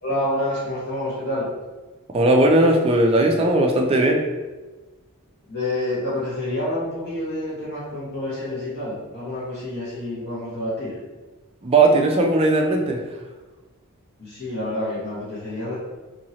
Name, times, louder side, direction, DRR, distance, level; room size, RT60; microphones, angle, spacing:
voice 1, 0.0-1.5 5.5-11.0 14.2-15.8, left 1 dB, 50° left, -9 dB, 1.2 m, -28 dB
voice 2, 2.1-4.2 11.6-13.0, right 2 dB, 25° right, 2 dB, 0.3 m, -17 dB
2.9 x 2.8 x 2.7 m, 1.2 s
head